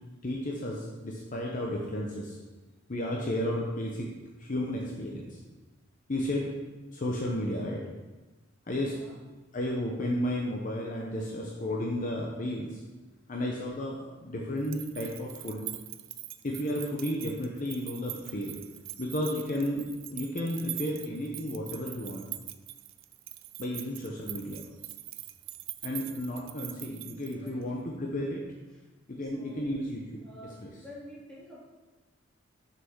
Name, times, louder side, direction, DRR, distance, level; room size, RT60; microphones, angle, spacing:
voice 1, 0.2-2.4 2.9-4.1 4.4-5.4 6.1-6.5 6.9-7.8 8.7-8.9 9.5-12.8 13.3-15.7 16.4-18.6 19.0-22.2 23.6-24.6 25.8-28.4 29.1-30.0 30.6-30.7, left 1 dB, 40° left, -1 dB, 0.9 m, -33 dB
voice 2, 8.9-9.2 19.4-19.6 27.4-27.9 28.7-28.9 29.2-29.7 30.2-31.6, left 1 dB, 5° left, -7 dB, 2.1 m, -49 dB
sound 1, 14.6-27.6, right 15 dB, 70° right, 0.4 m, -43 dB
6.4 x 6.0 x 4.6 m, 1.2 s
head